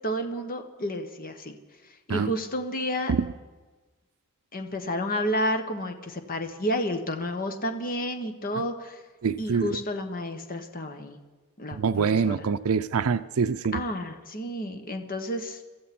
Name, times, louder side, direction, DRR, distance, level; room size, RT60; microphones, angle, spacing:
voice 1, 0.0-1.6 2.1-3.1 4.5-9.0 9.4-11.2 11.6-12.5 13.7-15.6, equal, 40° left, 7 dB, 1.3 m, -31 dB
voice 2, 9.2-9.8 11.7-13.8, right 5 dB, 75° right, 12 dB, 0.5 m, -25 dB
22.5 x 14.5 x 4.3 m, 1.3 s
head